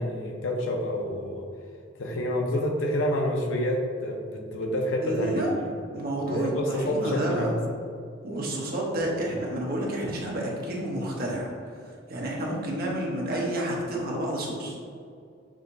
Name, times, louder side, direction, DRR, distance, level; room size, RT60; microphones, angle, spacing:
voice 1, 0.0-1.4 2.0-5.4 6.3-7.6, left 1 dB, 75° left, 2 dB, 0.6 m, -28 dB
voice 2, 5.0-5.5 5.9-7.5 8.2-11.5 11.8-14.8, right 1 dB, 50° right, -2 dB, 0.9 m, -30 dB
6.1 x 2.8 x 2.6 m, 2.3 s
head